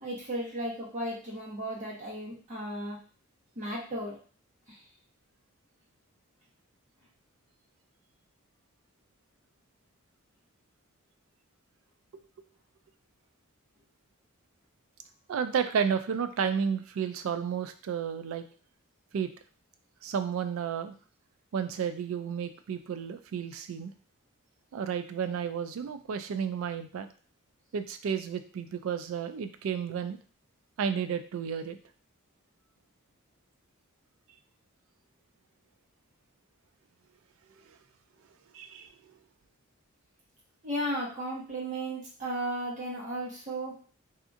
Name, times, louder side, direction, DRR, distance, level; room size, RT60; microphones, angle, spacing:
voice 1, 0.0-3.0 3.6-4.2 40.6-43.8, right 1 dB, 35° right, -5 dB, 1.0 m, -35 dB
voice 2, 15.3-18.5 19.1-19.3 20.0-20.9 21.5-23.9 24.7-27.1 27.7-30.2 30.8-31.8 38.5-38.9, right 7 dB, 65° right, 9 dB, 0.3 m, -32 dB
2.7 x 2.4 x 2.5 m, 0.40 s
head